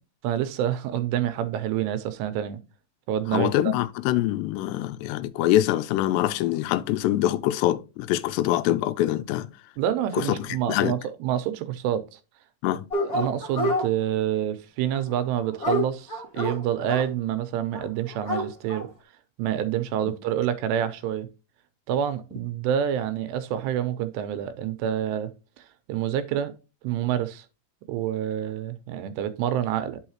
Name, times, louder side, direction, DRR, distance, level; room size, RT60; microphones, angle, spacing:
voice 1, 0.2-2.6 3.1-3.7 9.8-12.2 13.0-18.9 19.4-21.3 21.9-25.3 25.9-26.5 26.8-27.5 27.9-30.0, right 10 dB, 85° right, 2.8 m, -27 dB
voice 2, 3.3-9.6 10.1-11.0 12.6-12.9, left 13 dB, 85° left, 2.7 m, -24 dB
Dog, 12.9-13.9 14.9-17.0 17.7-17.8 18.1-18.8, left 1 dB, 25° left, 2.1 m, -27 dB
10.0 x 5.6 x 2.9 m
omnidirectional pair, 5.0 m